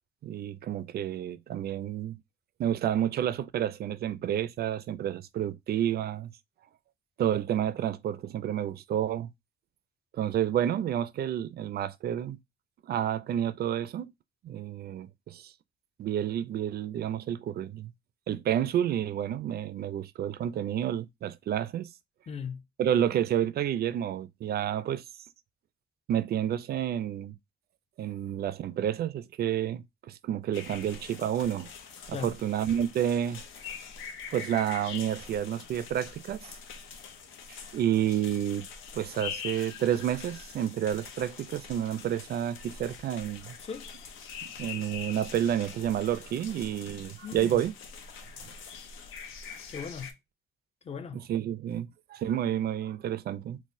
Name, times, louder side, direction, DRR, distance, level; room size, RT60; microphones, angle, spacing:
voice 1, 0.2-2.2 2.6-6.3 7.2-9.3 10.1-12.4 12.8-14.1 14.4-15.5 16.0-17.9 18.3-21.9 22.8-25.0 26.1-27.4 28.0-31.7 32.1-33.4 34.3-36.5 37.5-38.7 38.9-43.6 44.4-47.7 51.1-53.6, right 10 dB, 55° right, 0.4 m, -30 dB
voice 2, 22.3-22.6 32.1-32.3 43.6-43.9 47.2-47.6 49.7-50.1 50.8-51.2, left 6 dB, 30° left, 0.5 m, -38 dB
sound 1, 30.5-50.1, left 6 dB, 85° left, 0.6 m, -44 dB
4.0 x 2.2 x 2.5 m
cardioid pair, 90°, 20 cm